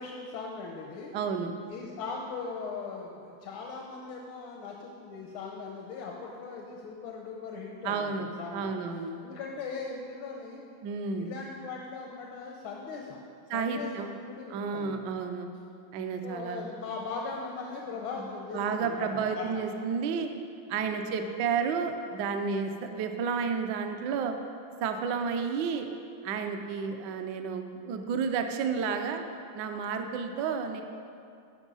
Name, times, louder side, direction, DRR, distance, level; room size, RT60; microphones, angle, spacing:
voice 1, 0.0-1.1 1.7-8.7 9.2-10.6 11.2-13.2 13.5-15.0 16.2-19.6 20.6-20.9, left 4 dB, 85° left, 0 dB, 1.6 m, -39 dB
voice 2, 1.1-1.5 7.8-8.3 8.5-9.2 10.8-11.3 13.5-14.1 14.5-15.5 15.9-16.7 18.5-20.3 20.7-24.4 24.8-25.9 26.2-29.2 29.5-30.8, right 5 dB, 70° right, 6 dB, 1.2 m, -31 dB
13.5 x 5.3 x 5.4 m, 2.4 s
omnidirectional pair, 2.1 m